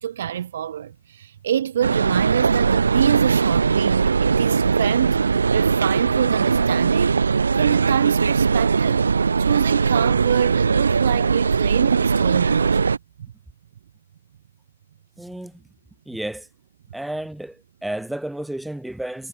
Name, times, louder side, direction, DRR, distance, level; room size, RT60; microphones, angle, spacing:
voice 1, 0.0-5.2 5.5-7.2 7.5-9.1 9.4-12.9, right 10 dB, 55° right, 0.4 m, -26 dB
sound 1, 1.8-13.0, right 5 dB, 80° right, 0.8 m, -20 dB
voice 2, 15.2-15.6 16.1-16.5 16.9-19.3, right 1 dB, ahead, 1.1 m, -32 dB
hypercardioid pair, 140°, 0 cm